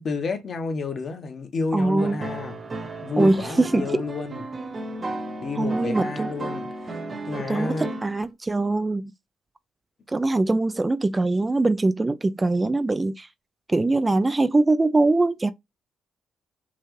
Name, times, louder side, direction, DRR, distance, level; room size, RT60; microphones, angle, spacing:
voice 1, 0.0-2.6 3.0-4.4 5.4-7.9, left 4 dB, 50° left, 1.0 m, -30 dB
voice 2, 1.7-2.2 3.2-4.0 5.6-6.3 7.5-9.1 10.1-13.3 13.7-15.5, right 2 dB, 20° right, 0.3 m, -22 dB
sound 1, 2.0-8.2, right 2 dB, 35° right, 0.9 m, -34 dB
5.7 x 2.3 x 3.1 m
cardioid pair, 90°, 0 cm